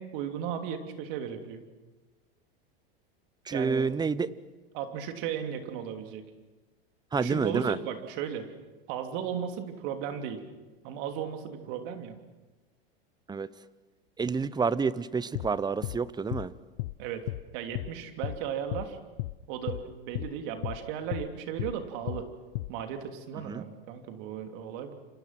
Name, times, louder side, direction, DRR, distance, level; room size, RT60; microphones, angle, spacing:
voice 1, 0.0-1.6 3.5-3.9 4.2-4.3 4.7-6.3 7.1-8.5 8.9-10.4 10.8-12.2 17.0-17.3 17.5-19.0 19.5-22.3 22.7-24.9, right 8 dB, 60° right, 6 dB, 3.2 m, -36 dB
voice 2, 3.5-4.3 7.1-7.8 13.3-13.5 14.2-16.5 23.5-23.6, right 5 dB, 15° right, 18 dB, 0.9 m, -28 dB
sound 1, 15.3-15.5 15.8-16.0 16.3-16.5 16.8-16.9 17.3-17.4 17.7-17.9 18.2-18.4 18.7-18.9 19.2-19.3 19.7-19.8 20.1-20.3 20.6-20.8 21.1-21.3 21.6-21.7 22.1-22.2 22.5-22.7, left 19 dB, 65° left, 0.9 m, -34 dB
29.5 x 25.5 x 6.1 m, 1.2 s
hypercardioid pair, 105°, 30 cm